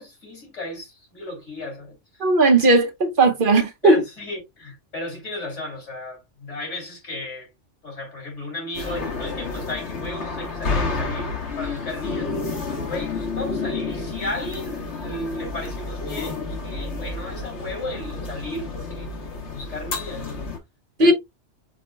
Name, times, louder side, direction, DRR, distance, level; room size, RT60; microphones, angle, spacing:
voice 1, 0.0-2.0 3.2-3.3 3.8-7.5 7.8-12.4 12.7-19.1 19.5-20.5 21.0-21.1, left 2 dB, 85° left, 3.2 m, -34 dB
voice 2, 2.2-4.0 21.0-21.1, right 2 dB, 50° right, 1.0 m, -16 dB
sound 1, 8.7-20.6, left 3 dB, 70° left, 1.4 m, -30 dB
5.2 x 4.2 x 2.2 m
omnidirectional pair, 1.2 m